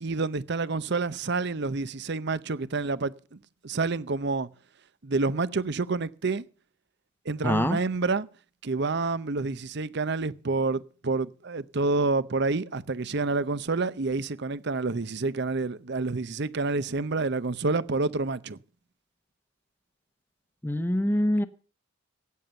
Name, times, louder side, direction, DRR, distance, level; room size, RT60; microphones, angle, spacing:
voice 1, 0.0-3.4 3.6-4.5 5.0-6.4 7.3-8.3 8.6-18.6, right 3 dB, 55° right, 0.7 m, -28 dB
voice 2, 7.4-7.8 20.6-21.4, left 1 dB, 10° left, 0.9 m, -24 dB
14.0 x 9.3 x 7.0 m
head